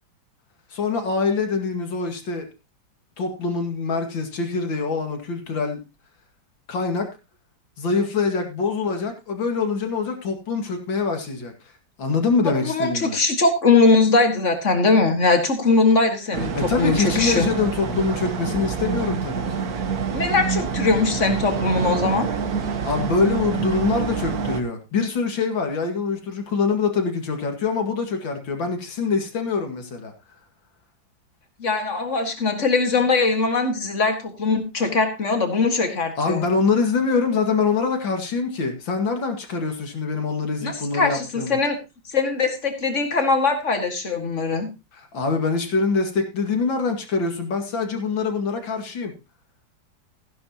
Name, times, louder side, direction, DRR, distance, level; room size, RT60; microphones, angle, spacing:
voice 1, 0.7-2.4 3.2-5.8 6.7-7.1 7.8-11.5 12.0-13.1 16.5-19.7 22.8-30.1 36.2-41.6 45.1-49.1, left 4 dB, 75° left, 5 dB, 2.9 m, -24 dB
voice 2, 12.4-17.5 20.1-22.3 31.6-36.5 40.6-41.8 42.1-44.7, left 3 dB, 40° left, 6 dB, 2.1 m, -21 dB
sound 1, 16.3-24.6, right 6 dB, 55° right, 1.7 m, -27 dB
15.0 x 11.0 x 3.0 m, 0.27 s
omnidirectional pair, 2.1 m